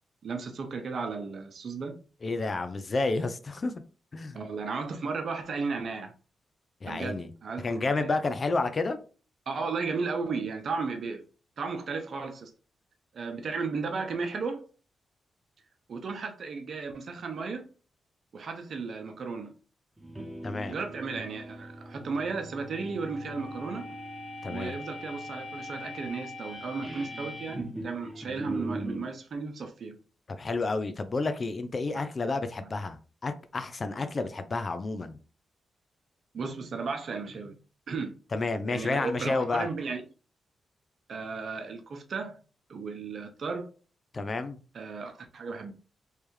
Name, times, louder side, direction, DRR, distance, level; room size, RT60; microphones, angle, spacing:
voice 1, 0.2-2.0 4.3-6.1 6.8-8.1 9.5-11.2 11.6-12.5 13.1-14.6 15.9-17.7 18.3-19.6 20.7-23.8 24.5-30.0 31.9-32.0 32.6-32.7 36.3-37.5 37.9-38.1 38.7-40.0 41.1-42.4 42.7-43.7 44.7-45.7, right 4 dB, 65° right, 0.7 m, -34 dB
voice 2, 2.2-3.7 4.1-4.4 6.8-7.3 7.6-9.0 20.4-20.8 24.4-24.8 30.3-35.2 38.3-39.7 44.1-44.6, left 3 dB, 45° left, 0.6 m, -30 dB
sound 1, 20.0-29.1, equal, 20° right, 1.1 m, -40 dB
3.3 x 3.3 x 3.1 m
supercardioid pair, 55°, 0 cm